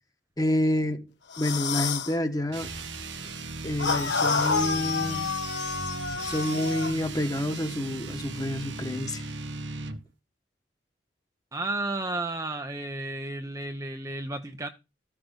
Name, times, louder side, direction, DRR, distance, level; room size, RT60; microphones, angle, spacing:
voice 1, 0.4-1.1 1.4-2.7 3.6-5.3 6.2-9.2, left 1 dB, 20° left, 1.3 m, -28 dB
sound 1, 1.3-2.1 3.8-7.0, left 5 dB, 75° left, 1.4 m, -29 dB
sound 2, 2.5-10.0, right 3 dB, 80° right, 1.4 m, -37 dB
voice 2, 11.5-14.7, right 2 dB, 20° right, 0.8 m, -32 dB
14.0 x 6.2 x 5.2 m
head